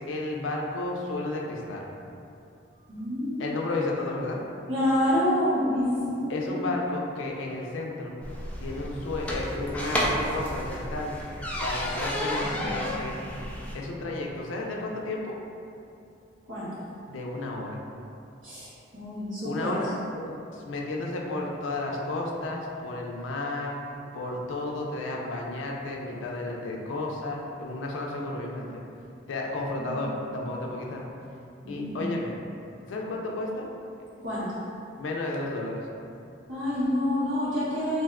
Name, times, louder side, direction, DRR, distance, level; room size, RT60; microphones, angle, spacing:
voice 1, 0.0-1.9 3.4-4.4 6.3-8.1 8.6-11.1 11.6-13.2 13.7-15.4 17.1-17.8 19.4-20.0 20.5-23.8 24.1-28.8 29.3-31.0 31.7-32.3 32.8-33.7 35.0-35.8, left 2 dB, 85° left, -1 dB, 0.4 m, -32 dB
voice 2, 2.9-3.7 4.7-6.8 16.5-16.7 18.4-19.8 20.1-20.2 29.8-30.1 31.6-32.1 34.2-34.6 36.5-38.0, left 1 dB, 90° right, -9 dB, 1.1 m, -28 dB
sound 1, 8.2-13.7, equal, 5° left, 0.3 m, -31 dB
2.6 x 2.2 x 3.5 m, 2.6 s
head